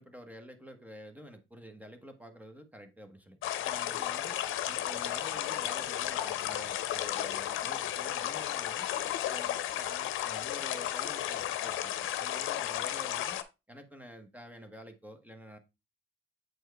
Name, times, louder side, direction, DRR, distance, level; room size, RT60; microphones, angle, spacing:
voice 1, 0.0-4.4 4.7-8.9 9.2-13.4 13.7-15.6, equal, 10° right, 1.1 m, -49 dB
sound 1, 3.4-13.4, left 12 dB, 85° left, 0.7 m, -33 dB
7.9 x 4.5 x 3.3 m
cardioid pair, 90°, 20 cm